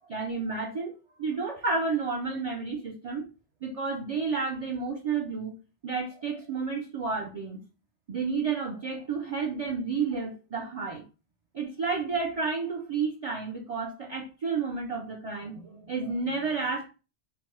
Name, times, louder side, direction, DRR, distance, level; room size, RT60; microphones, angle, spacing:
voice 1, 0.1-3.3 3.6-5.5 5.8-7.6 8.1-11.0 11.5-16.9, right 4 dB, 65° right, 1 dB, 0.3 m, -31 dB
3.2 x 2.1 x 3.0 m, 0.32 s
omnidirectional pair, 1.1 m